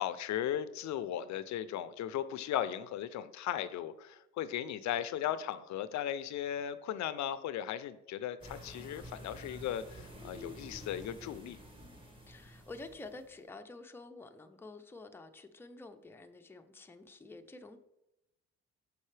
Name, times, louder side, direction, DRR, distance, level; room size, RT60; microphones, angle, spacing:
voice 1, 0.0-11.6, left 10 dB, 70° left, 0.5 m, -37 dB
sound 1, 8.4-13.4, equal, 15° right, 1.8 m, -50 dB
voice 2, 12.3-17.8, left 3 dB, 10° left, 0.5 m, -49 dB
6.5 x 5.5 x 3.2 m
cardioid pair, 90°, 30 cm